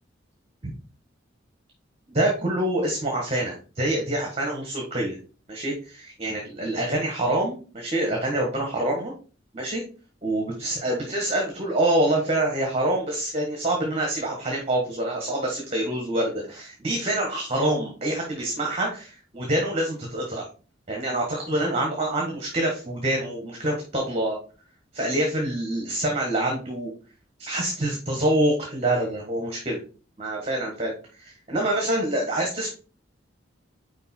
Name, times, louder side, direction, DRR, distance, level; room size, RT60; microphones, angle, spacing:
voice 1, 2.1-5.2 5.5-5.7 6.2-9.1 9.5-9.8 10.2-20.5 20.9-24.4 24.9-26.9 27.4-29.8 30.2-32.7, right 1 dB, 35° right, 0 dB, 1.4 m, -26 dB
5.2 x 4.5 x 4.3 m, 0.37 s
head